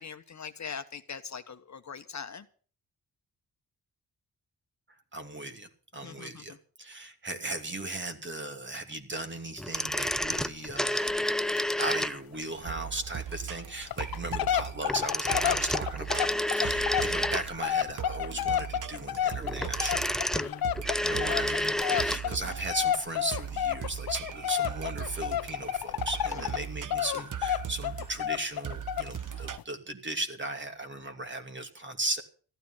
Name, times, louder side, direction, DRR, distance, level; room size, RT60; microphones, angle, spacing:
voice 1, 0.0-2.4 6.0-6.4 15.4-15.6 20.3-20.6 21.9-22.4, left 6 dB, 50° left, 8 dB, 1.3 m, -41 dB
voice 2, 5.1-20.1 21.0-21.7 22.0-32.2, right 2 dB, 30° right, 6 dB, 2.7 m, -37 dB
sound 1, 9.6-12.4 14.8-17.8 19.4-22.3 22.5-22.6, left 1 dB, ahead, 0.6 m, -30 dB
sound 2, 10.3-10.4 10.7-10.8 11.1-11.2 11.6-11.7 12.0-12.1 12.6-12.7 13.3-13.4 13.8-26.6 26.9-29.2 29.6-29.7, left 11 dB, 70° left, 0.7 m, -31 dB
sound 3, 12.7-29.6, right 9 dB, 55° right, 1.0 m, -39 dB
14.5 x 12.5 x 5.7 m, 0.42 s
cardioid pair, 95°, 37 cm